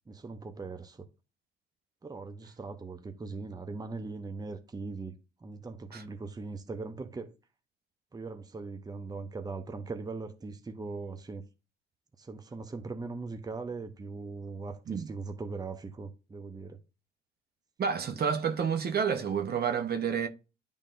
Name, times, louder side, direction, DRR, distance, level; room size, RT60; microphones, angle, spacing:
voice 1, 0.1-1.1 2.0-7.3 8.1-11.4 12.2-16.8 18.1-18.2, right 3 dB, 20° right, 0.8 m, -40 dB
voice 2, 17.8-20.3, right 7 dB, 50° right, 0.9 m, -29 dB
10.5 x 3.5 x 2.6 m
cardioid pair, 90°, 20 cm